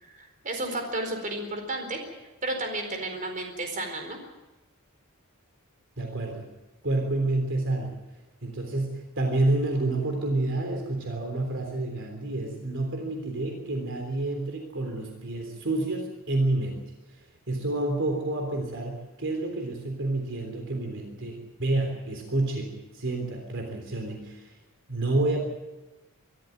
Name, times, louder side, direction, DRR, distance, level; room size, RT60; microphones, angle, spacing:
voice 1, 0.0-2.0 2.4-4.2, right 2 dB, 35° right, 4 dB, 4.4 m, -32 dB
voice 2, 6.0-6.4 6.8-7.9 8.4-16.8 17.5-24.5 24.9-25.4, right 2 dB, 60° right, 3 dB, 3.5 m, -29 dB
24.5 x 14.0 x 9.1 m, 1.1 s
head